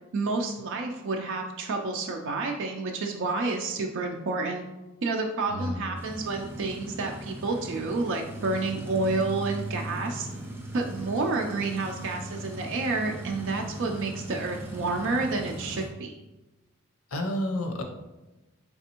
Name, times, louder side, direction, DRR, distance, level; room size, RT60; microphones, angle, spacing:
voice 1, 0.1-4.6 5.0-10.3 10.7-16.1, right 3 dB, 60° right, 2 dB, 0.4 m, -29 dB
voice 2, 5.5-5.8 17.1-17.8, left 1 dB, 85° left, 4 dB, 0.6 m, -30 dB
sound 1, 6.0-15.9, right 1 dB, 10° right, 0.6 m, -39 dB
4.1 x 3.3 x 2.9 m, 1.0 s
head